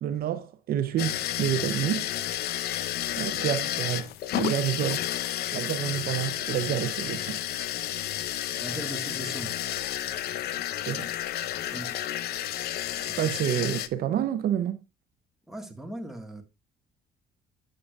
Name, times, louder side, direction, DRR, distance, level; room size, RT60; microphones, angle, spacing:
voice 1, 0.0-2.1 3.2-5.1 5.5-7.4 10.9-11.1 13.2-14.8, right 10 dB, 65° right, 0.7 m, -29 dB
sound 1, 1.0-13.9, left 12 dB, 70° left, 0.6 m, -31 dB
voice 2, 8.6-9.6 11.7-12.0 12.9-13.4 15.5-16.4, right 1 dB, ahead, 1.6 m, -39 dB
9.6 x 6.7 x 2.4 m
cardioid pair, 110°, 17 cm